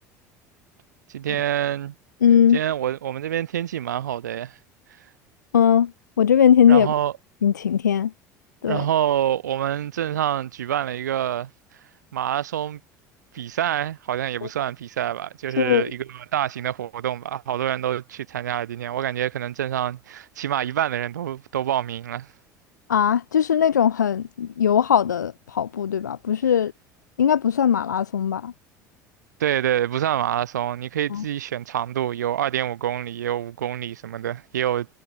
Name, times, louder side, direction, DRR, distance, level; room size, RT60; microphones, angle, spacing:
voice 1, 1.1-1.9 2.5-4.6 6.7-7.1 8.7-11.5 12.1-12.8 13.3-22.3 29.4-34.9, right 11 dB, 75° right, 0.4 m, -26 dB
voice 2, 2.2-2.6 5.5-5.9 6.2-6.9 7.4-8.1 8.6-8.9 14.4-14.5 15.6-15.9 22.9-26.7 27.2-28.5 31.1-31.2, left 8 dB, 80° left, 0.6 m, -19 dB
figure-of-eight pair, 65°, 10 cm